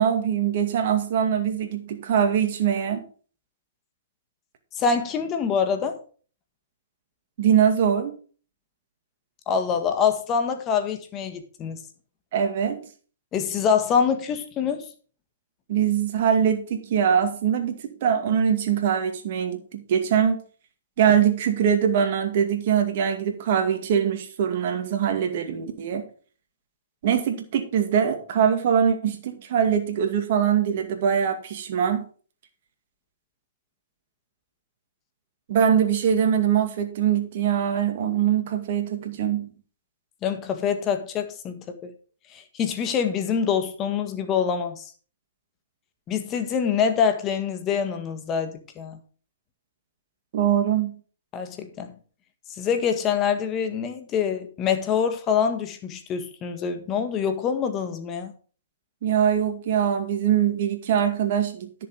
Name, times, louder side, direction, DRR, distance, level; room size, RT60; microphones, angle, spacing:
voice 1, 0.0-3.0 7.4-8.2 12.3-12.8 15.7-20.4 21.0-26.0 27.0-32.0 35.5-39.5 50.3-50.9 59.0-61.9, right 8 dB, 50° right, 2.2 m, -22 dB
voice 2, 4.7-6.0 9.5-11.8 13.3-14.8 40.2-41.9 42.3-44.9 46.1-49.0 51.3-51.9 52.6-58.3, left 7 dB, 25° left, 1.6 m, -25 dB
10.5 x 6.8 x 4.9 m
hypercardioid pair, 135°, 0 cm